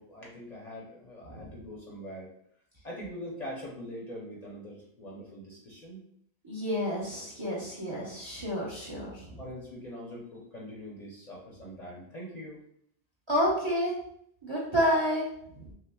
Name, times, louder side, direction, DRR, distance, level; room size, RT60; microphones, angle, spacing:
voice 1, 0.0-2.3 2.8-6.0 9.4-12.6, equal, 45° left, -4 dB, 0.8 m, -43 dB
voice 2, 6.4-9.4 13.3-13.9 14.4-15.3 15.5-15.7, equal, 30° right, -6 dB, 0.9 m, -29 dB
5.6 x 2.1 x 2.3 m, 0.70 s
omnidirectional pair, 1.1 m